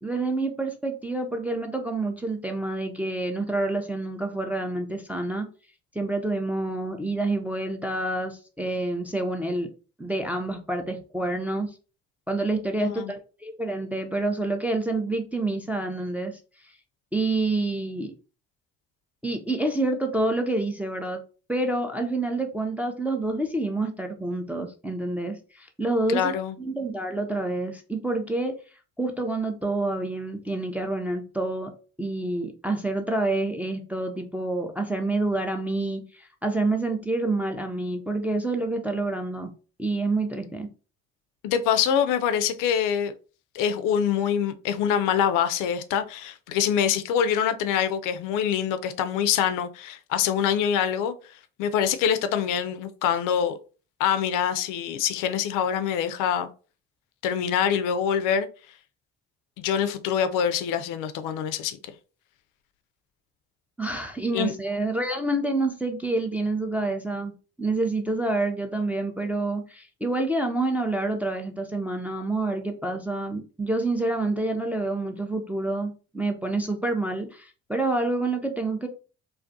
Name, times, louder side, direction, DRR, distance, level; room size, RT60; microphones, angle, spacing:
voice 1, 0.0-5.5 5.9-9.7 10.0-11.7 12.3-16.4 17.1-18.1 19.2-21.2 21.5-28.5 29.0-31.7 32.0-39.5 39.8-40.7 63.8-67.3 67.6-78.9, right 2 dB, 5° right, 0.4 m, -28 dB
voice 2, 12.8-13.1 26.1-26.5 41.4-43.1 43.5-51.1 51.6-53.6 54.0-56.5 57.2-58.5 59.6-61.8 64.3-64.5, left 8 dB, 60° left, 0.4 m, -25 dB
2.3 x 2.1 x 2.6 m
hypercardioid pair, 50°, 37 cm